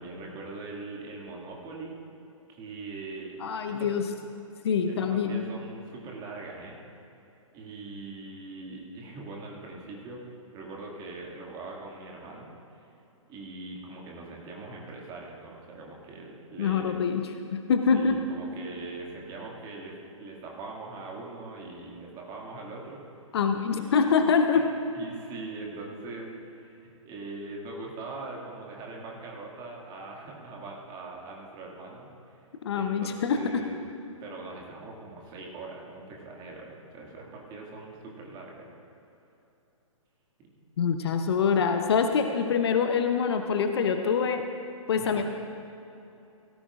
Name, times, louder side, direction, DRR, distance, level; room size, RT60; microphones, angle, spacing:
voice 1, 0.0-2.0 2.5-3.3 3.7-3.9 4.9-6.8 7.5-12.9 13.3-17.0 17.9-23.0 23.7-24.3 24.5-24.7 24.9-33.9 34.2-38.7 44.9-45.2, right 3 dB, 25° right, -2 dB, 2.1 m, -42 dB
voice 2, 3.4-4.0 4.6-5.5 16.6-17.2 17.5-18.2 23.3-24.6 32.6-33.6 40.8-44.4 44.9-45.2, left 6 dB, 50° left, 6 dB, 0.8 m, -25 dB
17.5 x 13.5 x 2.5 m, 2.9 s
figure-of-eight pair, 125°, 17 cm